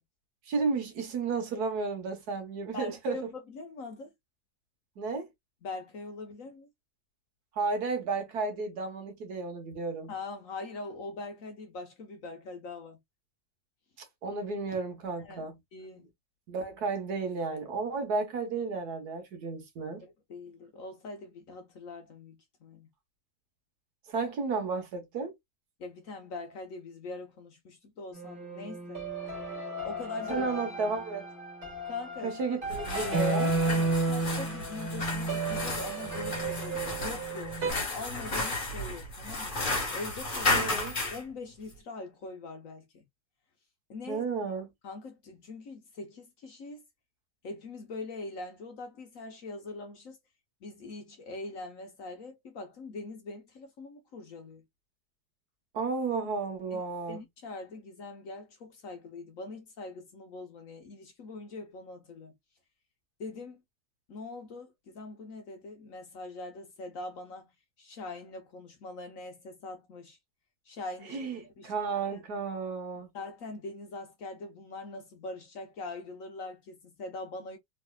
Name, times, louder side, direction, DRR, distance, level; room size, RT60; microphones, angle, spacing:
voice 1, 0.5-3.2 5.0-5.3 7.6-10.1 14.2-15.5 16.5-20.0 24.1-25.3 30.3-31.3 32.2-33.5 40.5-40.9 44.1-44.7 55.7-57.2 71.1-71.4 71.6-73.1, right 4 dB, 65° right, 1.5 m, -32 dB
voice 2, 2.7-4.1 5.6-6.7 10.1-13.0 15.2-15.5 15.7-16.1 20.0-22.9 25.8-29.1 29.8-30.5 31.9-32.3 33.7-39.6 39.9-43.0 43.9-44.2 44.8-46.8 47.4-50.2 50.6-54.6 56.7-56.8 57.1-62.3 63.2-63.6 64.1-70.2 70.6-71.7 72.1-72.2 72.9-77.6, left 3 dB, 60° left, 1.0 m, -42 dB
sound 1, 28.1-37.7, right 2 dB, 30° right, 1.9 m, -33 dB
sound 2, 32.7-41.2, left 2 dB, 30° left, 1.4 m, -33 dB
3.4 x 3.2 x 2.2 m
omnidirectional pair, 1.8 m